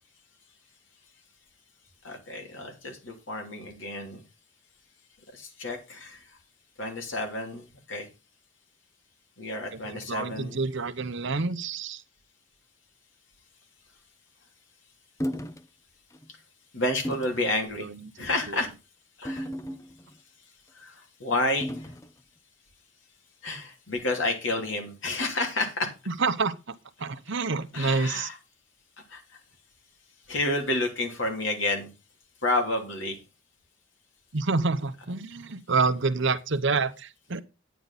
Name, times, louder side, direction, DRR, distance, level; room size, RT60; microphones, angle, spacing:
voice 1, 2.0-4.2 5.3-6.2 6.8-8.1 9.4-10.6 16.7-17.9 18.2-18.7 19.2-19.5 20.7-21.9 23.4-25.9 27.7-28.4 29.1-29.4 30.3-31.9 32.4-33.2, left 2 dB, 65° left, 3.1 m, -30 dB
voice 2, 9.7-12.0 17.8-17.9 18.5-18.6 26.1-26.7 27.0-28.3 34.3-37.4, right 4 dB, 60° right, 0.9 m, -28 dB
sound 1, 15.2-15.6 16.1-16.3 17.0-17.4 18.2-18.5 19.3-20.2 21.6-22.1, equal, 15° left, 0.6 m, -35 dB
10.0 x 9.2 x 4.0 m
head